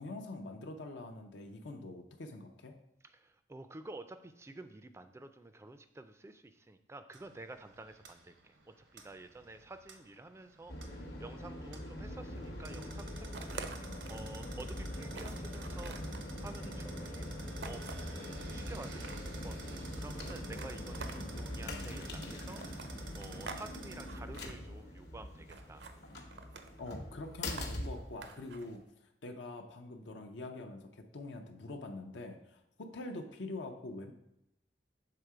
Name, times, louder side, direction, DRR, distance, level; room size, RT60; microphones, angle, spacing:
voice 1, 0.0-2.8 26.8-28.8 29.2-34.1, left 2 dB, 80° left, 4 dB, 0.6 m, -44 dB
voice 2, 3.0-17.4 17.6-18.0 18.5-25.9, right 2 dB, 15° right, 10 dB, 0.3 m, -51 dB
sound 1, 7.1-24.1, right 4 dB, 85° right, 0.9 m, -53 dB
sound 2, 10.7-28.8, left 1 dB, 65° left, 0.9 m, -43 dB
sound 3, 13.3-14.3 14.7-14.8 15.1-16.3 17.6-18.2 18.8-19.4 20.1-21.5 22.5-23.7 23.9-24.5 25.5-26.0 26.3-26.8 27.5-28.6, right 4 dB, 70° right, 0.5 m, -47 dB
6.7 x 3.6 x 4.7 m, 0.82 s
head